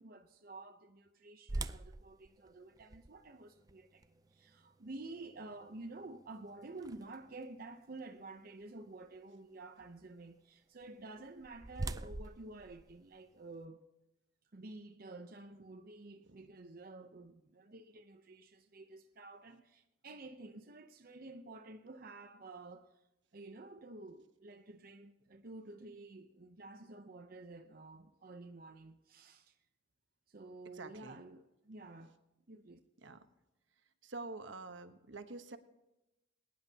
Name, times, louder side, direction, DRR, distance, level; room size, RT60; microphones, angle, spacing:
voice 1, 0.0-4.0 4.3-13.8 14.5-23.0 23.3-29.6 30.3-32.2 32.5-32.8, right 2 dB, 50° right, 0.7 m, -51 dB
sound 1, 1.5-7.4 8.0-8.1 8.7-8.9 11.0-13.6, right 2 dB, 20° right, 0.4 m, -45 dB
voice 2, 30.6-31.2 33.0-33.2 34.0-35.6, right 3 dB, 75° right, 1.1 m, -47 dB
21.5 x 10.5 x 2.8 m
head